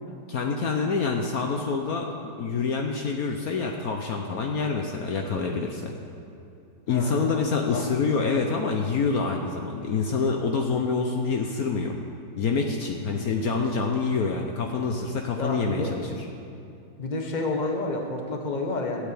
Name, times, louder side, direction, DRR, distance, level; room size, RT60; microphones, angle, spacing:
voice 1, 0.3-2.1 2.4-5.9 6.9-12.0 12.4-16.1, left 4 dB, 65° left, 2 dB, 1.3 m, -26 dB
voice 2, 6.9-8.1 13.0-13.3 15.3-15.9 17.0-19.1, left 2 dB, 30° left, 2 dB, 1.4 m, -30 dB
12.5 x 8.0 x 8.4 m, 2.7 s
omnidirectional pair, 1.8 m